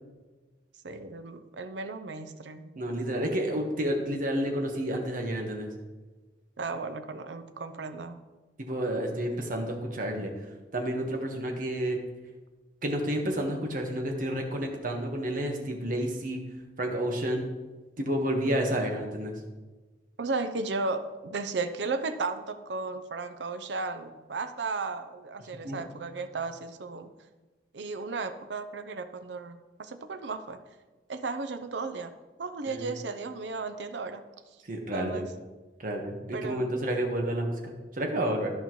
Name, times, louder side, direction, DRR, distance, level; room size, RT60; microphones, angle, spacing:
voice 1, 0.8-2.7 6.6-8.2 20.2-27.1 27.7-30.6 31.1-34.2 34.9-35.3 36.3-36.8, right 3 dB, 80° right, 9 dB, 0.6 m, -35 dB
voice 2, 2.8-5.7 8.6-10.3 10.7-12.0 12.8-16.4 16.8-17.4 18.0-19.3 25.6-25.8 32.7-32.9 34.7-35.3 35.8-38.5, right 1 dB, 50° right, 2 dB, 1.3 m, -30 dB
13.5 x 5.4 x 3.1 m, 1.3 s
head